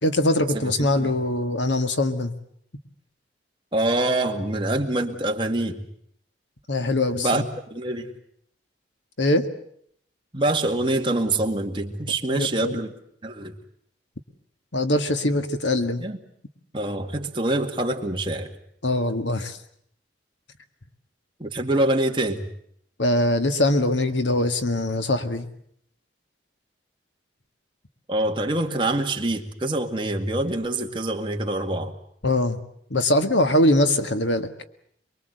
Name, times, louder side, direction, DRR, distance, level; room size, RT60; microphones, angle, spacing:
voice 1, 0.0-2.3 6.7-7.4 9.2-9.5 12.3-12.8 14.7-16.0 18.8-19.6 23.0-25.5 32.2-32.6 32.9-34.5, left 1 dB, 80° left, 8 dB, 1.9 m, -22 dB
voice 2, 0.5-1.1 3.7-5.8 7.1-7.4 7.7-8.1 10.3-12.9 13.2-13.5 16.0-16.2 16.7-18.5 21.4-22.5 28.1-31.9, right 2 dB, 25° right, 3 dB, 2.1 m, -25 dB
24.0 x 23.0 x 8.0 m, 0.68 s
head